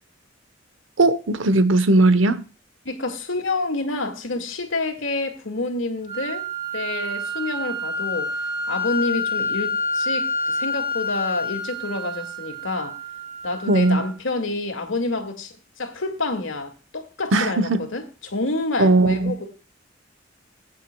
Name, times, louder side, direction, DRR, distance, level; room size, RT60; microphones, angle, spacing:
voice 1, 1.0-2.4 13.7-14.0 17.3-17.9 18.8-19.3, right 2 dB, 75° right, 1.0 m, -18 dB
voice 2, 2.8-6.5 6.7-8.3 8.7-13.0 13.4-19.5, left 2 dB, 75° left, 2.2 m, -28 dB
sound 1, 6.1-14.1, left 1 dB, 35° right, 2.6 m, -28 dB
20.0 x 9.2 x 2.3 m
head